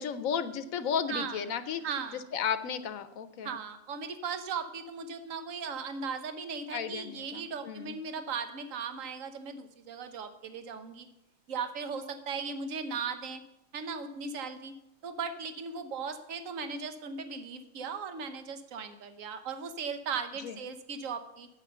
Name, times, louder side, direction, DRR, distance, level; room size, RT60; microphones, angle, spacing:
voice 1, 0.0-1.8 2.3-3.6 6.7-7.9 20.4-20.6, left 7 dB, 85° left, 13 dB, 1.2 m, -34 dB
voice 2, 1.1-1.4 1.8-2.2 3.4-11.1 11.5-13.4 13.7-14.7 15.0-21.5, right 5 dB, 75° right, 9 dB, 1.3 m, -37 dB
9.4 x 8.3 x 6.7 m, 0.88 s
omnidirectional pair, 1.4 m